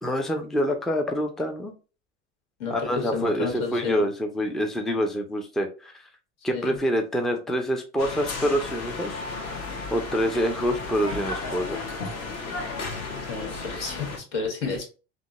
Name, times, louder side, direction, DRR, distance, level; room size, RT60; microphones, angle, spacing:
voice 1, 0.0-1.7 2.7-6.0 6.4-9.2 9.9-11.8, equal, ahead, 4 dB, 0.3 m, -26 dB
voice 2, 2.6-4.0 6.5-6.8 13.3-14.9, left 4 dB, 75° left, 2 dB, 1.4 m, -31 dB
sound 1, 8.0-14.2, left 3 dB, 50° left, 1.0 m, -34 dB
3.5 x 2.1 x 2.4 m, 0.33 s
supercardioid pair, 105°, 35 cm